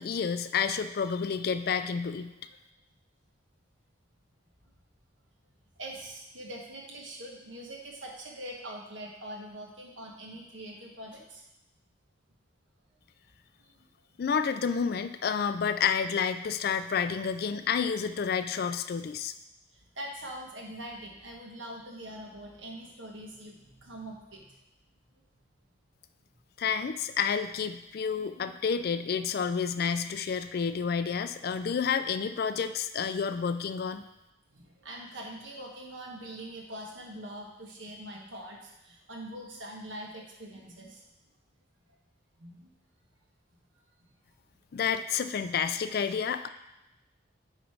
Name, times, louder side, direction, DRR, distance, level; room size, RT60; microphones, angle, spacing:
voice 1, 0.0-2.3 14.2-19.3 26.6-34.0 44.7-46.5, left 6 dB, 50° left, 10 dB, 0.3 m, -30 dB
voice 2, 5.8-11.4 13.6-13.7 19.7-24.5 34.5-41.0 42.4-42.7, right 1 dB, 75° right, -1 dB, 1.3 m, -43 dB
8.9 x 3.1 x 4.8 m, 0.95 s
head